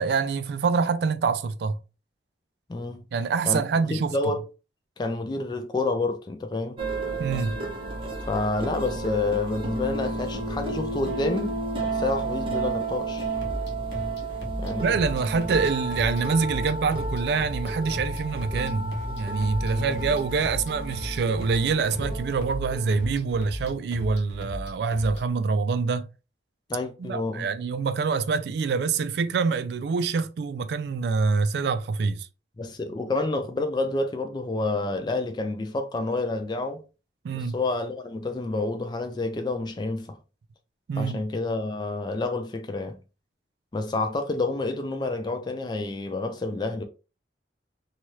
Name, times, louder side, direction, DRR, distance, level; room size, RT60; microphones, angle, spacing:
voice 1, 0.0-1.8 3.1-4.1 7.2-7.6 14.8-26.1 27.0-32.3 37.2-37.6 40.9-41.2, right 5 dB, 60° right, 0.3 m, -26 dB
voice 2, 3.9-4.4 5.0-6.8 8.2-11.6 11.9-13.3 14.6-14.9 19.7-20.0 26.7-27.5 32.6-36.8 37.3-40.2 41.0-43.0 43.7-46.8, left 2 dB, 25° left, 0.3 m, -29 dB
sound 1, 6.8-23.6, right 2 dB, 30° right, 0.7 m, -32 dB
sound 2, 13.3-25.3, left 1 dB, 70° left, 0.9 m, -37 dB
3.1 x 2.3 x 2.7 m
head